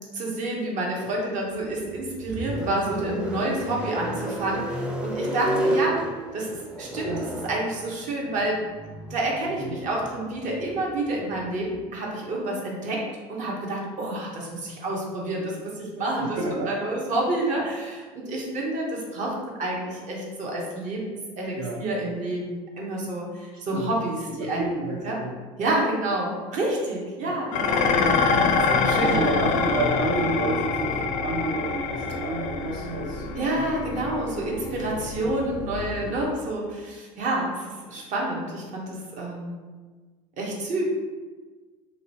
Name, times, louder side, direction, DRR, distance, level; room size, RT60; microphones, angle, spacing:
voice 1, 0.0-6.0 6.3-8.6 9.1-16.4 16.6-24.7 25.0-25.2 25.6-27.9 28.7-29.2 33.3-39.6 40.4-40.8, right 1 dB, 50° right, -2 dB, 1.0 m, -29 dB
sound 1, 1.5-11.8, right 1 dB, 5° right, 0.5 m, -32 dB
voice 2, 16.2-16.7 17.5-17.7 21.5-21.8 23.7-23.9 24.4-25.3 25.6-25.7 26.3-26.4 27.2-27.4 29.0-33.8 35.0-35.1, right 2 dB, 75° right, -4 dB, 0.6 m, -30 dB
Dishes pots and pans, 27.5-36.3, left 4 dB, 55° left, 0.4 m, -26 dB
3.1 x 2.9 x 2.8 m, 1.4 s
hypercardioid pair, 80°, 16 cm